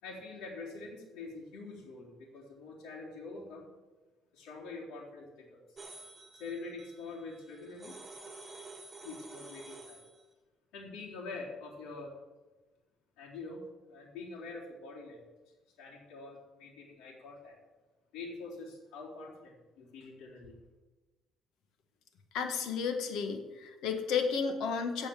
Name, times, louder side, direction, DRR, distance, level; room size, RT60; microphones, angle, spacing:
voice 1, 0.0-3.7 4.3-5.6 6.4-7.9 9.0-10.0 10.7-12.2 13.2-15.2 15.8-17.6 18.1-20.5, left 3 dB, 85° left, -4 dB, 4.1 m, -45 dB
sound 1, 5.8-10.2, right 2 dB, 20° right, 1.5 m, -50 dB
voice 2, 22.3-25.1, left 6 dB, 65° left, 6 dB, 1.7 m, -32 dB
15.5 x 5.7 x 7.5 m, 1.2 s
cardioid pair, 170°, 0 cm